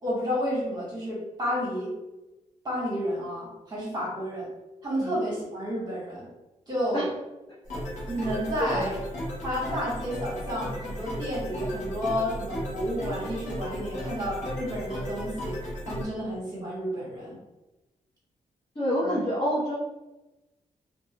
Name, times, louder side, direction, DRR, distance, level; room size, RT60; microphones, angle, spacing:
voice 1, 0.0-1.9 2.6-4.5 4.8-6.3 6.7-7.1 8.1-9.0 9.4-15.5 15.9-17.4 19.0-19.1, equal, 35° right, -6 dB, 1.1 m, -31 dB
sound 1, 7.6-16.0, equal, 70° left, 0.9 m, -35 dB
voice 2, 8.6-8.9 18.7-19.7, equal, 30° left, -8 dB, 0.7 m, -27 dB
2.5 x 2.3 x 2.8 m, 1.0 s
wide cardioid pair, 135°, 13 cm